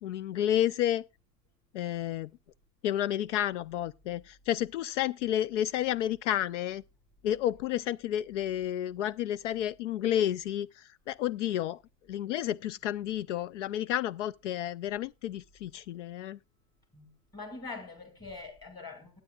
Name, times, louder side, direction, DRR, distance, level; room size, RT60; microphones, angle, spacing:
voice 1, 0.0-1.0 1.7-2.3 2.8-6.8 7.2-10.7 11.1-11.8 12.1-16.4, left 11 dB, 70° left, 0.5 m, -31 dB
voice 2, 17.3-19.2, left 3 dB, 10° left, 2.6 m, -43 dB
19.0 x 8.9 x 2.3 m
supercardioid pair, 175°, 37 cm